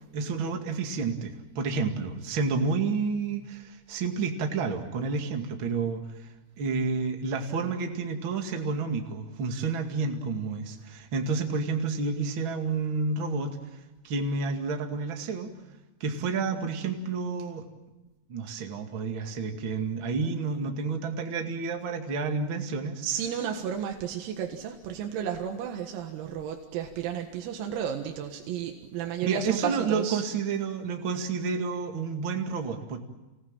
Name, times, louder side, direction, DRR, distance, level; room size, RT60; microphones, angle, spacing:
voice 1, 0.1-6.0 6.6-13.5 14.0-15.5 16.0-17.6 18.3-23.0 29.2-33.0, right 4 dB, 50° right, 4 dB, 1.5 m, -30 dB
voice 2, 23.0-30.3, right 9 dB, 85° right, 3 dB, 4.4 m, -33 dB
28.5 x 19.0 x 9.0 m, 1.1 s
omnidirectional pair, 6.0 m